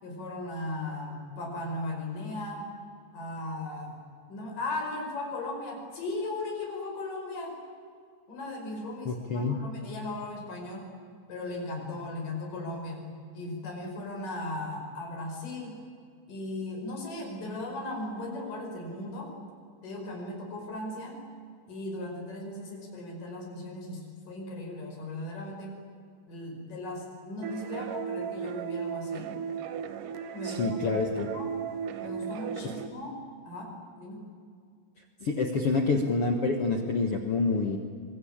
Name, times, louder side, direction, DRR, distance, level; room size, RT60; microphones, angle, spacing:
voice 1, 0.0-2.6 3.1-4.0 4.3-7.6 8.3-10.9 11.3-13.0 13.3-15.8 16.3-19.3 19.8-21.2 21.7-24.0 24.3-25.8 26.3-29.4 30.3-30.8 31.3-31.5 32.0-33.1 33.4-34.2, left 2 dB, 50° left, 1 dB, 6.5 m, -37 dB
voice 2, 9.0-9.6 30.4-31.3 35.2-37.8, left 3 dB, 75° left, 4 dB, 1.3 m, -27 dB
sound 1, 27.4-32.9, right 7 dB, 65° right, 2.4 m, -35 dB
24.5 x 22.5 x 8.8 m, 2.2 s
omnidirectional pair, 5.0 m